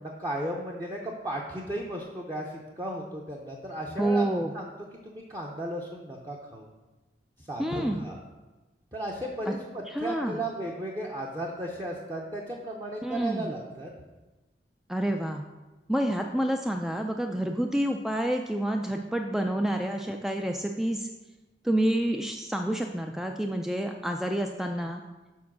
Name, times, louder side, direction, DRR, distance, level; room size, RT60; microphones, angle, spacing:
voice 1, 0.0-4.3 4.5-4.6 5.0-6.7 7.4-8.2 8.9-13.9, right 1 dB, 20° right, -1 dB, 0.7 m, -35 dB
voice 2, 4.0-4.5 7.6-8.0 9.5-9.6 9.9-10.4 13.0-13.5 14.9-15.4 15.9-21.1 21.6-25.0, right 1 dB, ahead, 4 dB, 0.3 m, -28 dB
7.2 x 4.6 x 6.0 m, 1.1 s
head